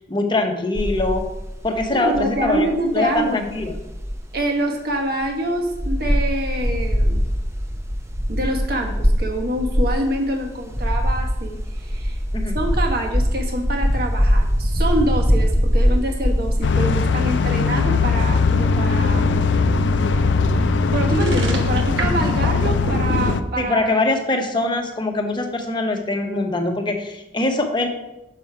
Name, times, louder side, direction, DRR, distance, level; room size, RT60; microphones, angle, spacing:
voice 1, 0.1-1.3 1.6-3.8 12.3-12.5 23.6-27.9, left 2 dB, 25° left, 4 dB, 0.9 m, -23 dB
sound 1, 0.8-4.4 4.9-5.0 5.2-5.3 5.7-16.7, equal, 15° right, 0.7 m, -22 dB
voice 2, 1.9-3.4 4.3-7.3 8.3-12.2 12.5-19.3 20.9-23.8, right 1 dB, 55° right, 2 dB, 1.4 m, -25 dB
sound 2, 16.6-23.4, left 4 dB, 85° left, 0.5 m, -19 dB
sound 3, 21.1-23.3, right 2 dB, 75° right, 1.2 m, -28 dB
6.6 x 6.0 x 4.8 m, 0.90 s
head